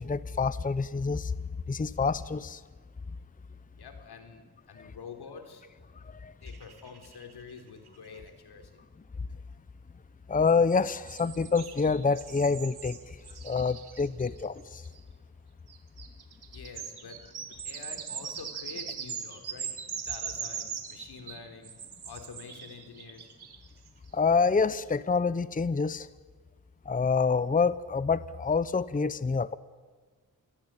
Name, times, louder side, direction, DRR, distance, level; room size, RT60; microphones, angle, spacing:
voice 1, 0.0-1.3 1.7-2.6 6.2-6.3 10.3-13.0 13.4-14.8 24.1-26.1 26.9-29.6, left 4 dB, 20° left, 16 dB, 0.8 m, -27 dB
voice 2, 3.8-5.7 6.0-8.8 16.5-19.7 20.0-21.7 22.0-23.3, left 5 dB, 85° left, 6 dB, 3.7 m, -47 dB
sound 1, 6.5-7.5 7.9-8.0 8.2-8.3 10.5-15.0 15.7-23.9, right 7 dB, 80° right, 2.5 m, -41 dB
27.5 x 21.5 x 9.0 m, 1.4 s
cardioid pair, 85°, 38 cm